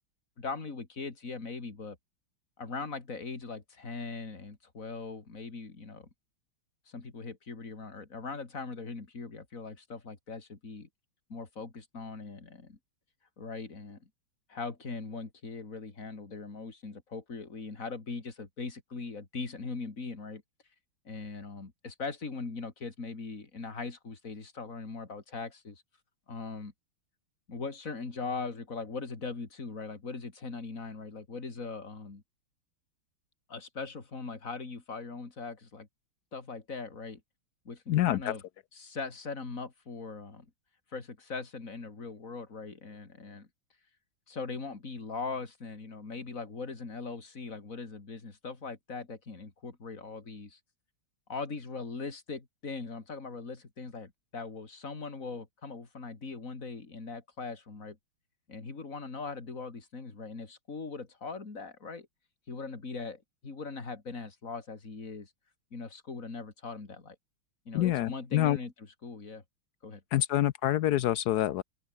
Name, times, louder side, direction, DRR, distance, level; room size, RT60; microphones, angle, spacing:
voice 1, 0.4-2.0 2.6-6.1 6.9-10.9 11.3-12.8 13.4-14.1 14.5-20.4 21.1-25.8 26.3-26.7 27.5-32.2 33.5-35.9 36.3-37.2 37.7-38.4 38.7-40.5 40.9-43.5 44.3-50.6 51.3-58.0 58.5-62.1 62.5-65.3 65.7-67.2 67.7-69.4 69.8-70.2, left 4 dB, 40° left, 3.6 m, -40 dB
voice 2, 37.9-38.3 67.7-68.6 70.1-71.6, left 13 dB, 75° left, 0.9 m, -26 dB
open air
omnidirectional pair, 2.3 m